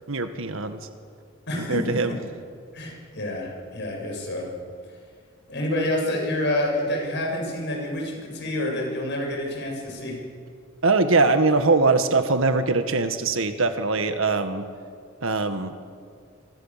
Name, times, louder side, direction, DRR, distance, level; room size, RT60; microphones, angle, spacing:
voice 1, 0.1-0.8 1.7-2.2 10.8-14.7 15.2-15.7, right 3 dB, 70° right, 8 dB, 1.7 m, -22 dB
voice 2, 1.5-1.8 2.7-4.5 5.5-10.2, left 1 dB, 55° left, 0 dB, 7.4 m, -28 dB
27.0 x 24.0 x 7.5 m, 2.2 s
head